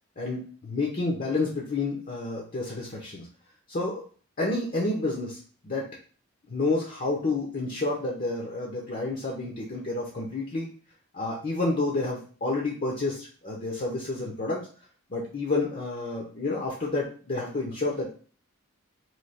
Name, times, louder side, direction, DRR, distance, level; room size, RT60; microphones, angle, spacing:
voice 1, 0.2-3.3 3.7-4.0 4.4-5.9 6.5-10.7 11.1-14.6 15.1-18.1, left 2 dB, 40° left, -2 dB, 0.7 m, -29 dB
3.2 x 2.9 x 4.2 m, 0.42 s
head